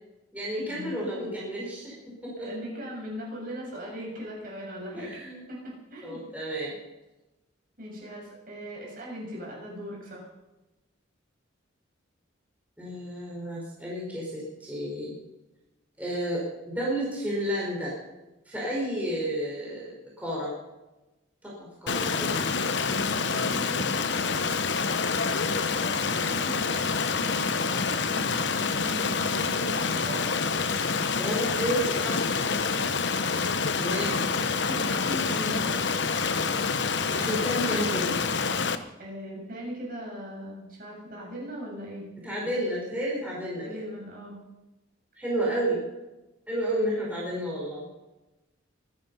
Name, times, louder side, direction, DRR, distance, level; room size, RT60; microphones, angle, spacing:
voice 1, 0.3-2.0 2.2-2.5 4.9-5.4 6.0-6.8 12.8-15.1 16.0-17.9 18.4-20.5 21.4-22.3 24.9-25.2 31.1-32.3 33.8-34.2 37.1-38.1 42.2-43.8 45.2-45.8 46.5-47.8, equal, 10° right, -5 dB, 4.7 m, -31 dB
voice 2, 2.4-5.2 5.5-6.2 7.8-10.3 23.0-23.9 27.9-30.2 34.0-34.2 34.6-36.1 39.0-42.1 43.6-44.4, equal, 45° right, -2 dB, 7.3 m, -39 dB
Stream, 21.9-38.8, left 5 dB, 60° left, 1.0 m, -27 dB
23.5 x 10.5 x 5.6 m, 1.0 s
head